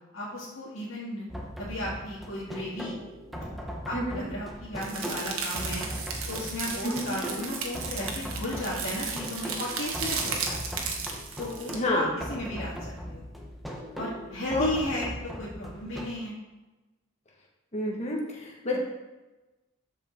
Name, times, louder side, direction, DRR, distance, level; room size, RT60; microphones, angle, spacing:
voice 1, 0.1-1.3 1.6-2.9 3.3-5.9 6.3-10.6 11.4-13.2 14.0-16.4 18.7-18.8, left 1 dB, 65° left, -8 dB, 2.0 m, -35 dB
sound 1, 1.3-16.1, equal, ahead, 1.1 m, -39 dB
sound 2, 4.8-11.8, right 5 dB, 80° right, 1.4 m, -35 dB
voice 2, 11.7-12.1 14.5-14.7 17.7-18.2 18.6-18.8, left 1 dB, 30° left, -2 dB, 1.8 m, -28 dB
13.0 x 5.5 x 3.8 m, 1.1 s
head